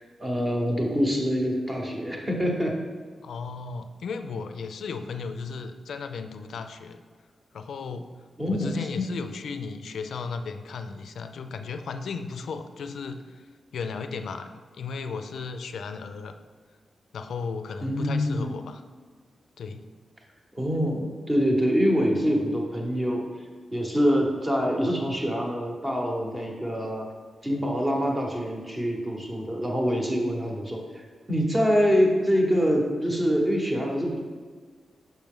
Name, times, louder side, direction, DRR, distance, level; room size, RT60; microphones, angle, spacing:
voice 1, 0.0-2.8 8.4-9.0 17.8-18.6 20.5-23.3 23.7-27.1 27.4-34.2, equal, 15° right, 0 dB, 0.9 m, -25 dB
voice 2, 3.2-7.0 7.5-8.1 8.5-13.5 13.7-16.3 17.1-18.8 19.6-19.8, left 5 dB, 75° left, 8 dB, 0.4 m, -35 dB
5.9 x 5.7 x 3.6 m, 1.6 s
wide cardioid pair, 160°, 0 cm